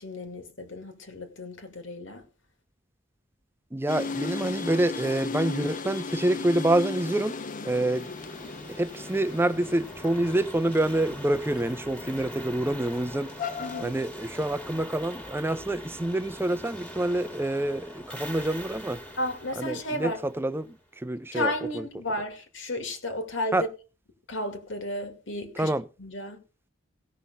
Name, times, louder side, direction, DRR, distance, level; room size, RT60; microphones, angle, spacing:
voice 1, 0.0-2.2 13.6-13.9 19.2-20.2 21.3-23.6 24.3-25.7 26.0-26.4, left 1 dB, 75° left, 2.4 m, -33 dB
voice 2, 3.7-7.4 7.6-8.1 8.7-13.3 13.8-19.0 19.6-21.9 23.5-23.7 25.6-25.9, right 1 dB, 10° right, 0.6 m, -27 dB
sound 1, 3.9-13.8, left 4 dB, 45° left, 0.8 m, -37 dB
sound 2, 8.0-20.8, equal, 5° left, 1.9 m, -43 dB
17.0 x 6.0 x 5.5 m
head